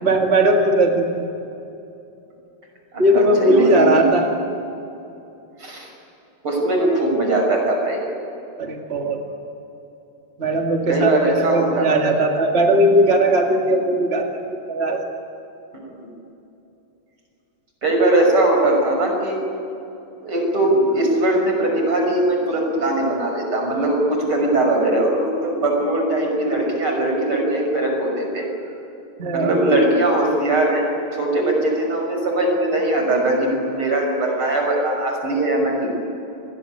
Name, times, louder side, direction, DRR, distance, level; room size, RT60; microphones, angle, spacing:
voice 1, 0.0-1.2 3.0-4.3 8.6-9.2 10.4-14.3 14.7-15.0 29.2-29.5, right 1 dB, 30° right, 2 dB, 2.2 m, -18 dB
voice 2, 2.9-4.0 5.6-5.9 6.4-8.0 10.9-12.1 16.0-16.1 17.8-19.4 20.2-28.5 29.3-30.8 31.1-35.9, right 1 dB, 75° right, 1 dB, 6.9 m, -20 dB
27.0 x 21.0 x 10.0 m, 2.9 s
omnidirectional pair, 2.4 m